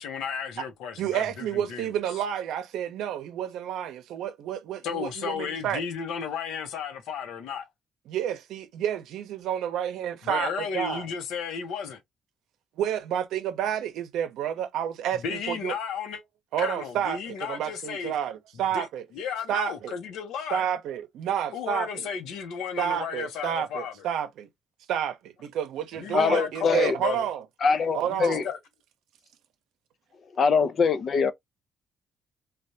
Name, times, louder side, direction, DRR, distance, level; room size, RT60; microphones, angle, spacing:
voice 1, 0.0-1.9 4.8-7.7 10.2-12.0 15.1-16.2 16.6-18.1 18.7-18.9 19.1-20.6 21.5-23.9 26.0-27.3 28.0-28.6, left 7 dB, 90° left, 0.8 m, -33 dB
voice 2, 1.0-5.8 8.1-11.1 12.8-15.7 16.5-19.0 19.5-19.9 20.5-22.1 22.8-24.5 24.9-27.4 27.9-28.5, right 10 dB, 85° right, 0.7 m, -30 dB
voice 3, 26.1-27.0 27.6-28.4 30.4-31.3, left 5 dB, 55° left, 0.5 m, -23 dB
3.3 x 2.3 x 2.7 m
cardioid pair, 90°, 0 cm